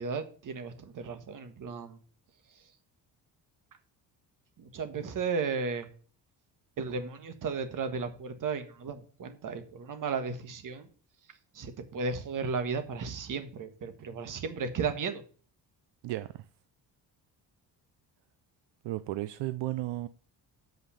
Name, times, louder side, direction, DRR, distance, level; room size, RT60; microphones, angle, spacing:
voice 1, 0.0-2.0 4.6-5.9 6.8-10.9 11.5-15.2, right 5 dB, 50° right, 1.5 m, -34 dB
voice 2, 16.0-16.5 18.8-20.1, right 16 dB, 80° right, 0.6 m, -34 dB
8.0 x 5.5 x 7.0 m
cardioid pair, 125°, 42 cm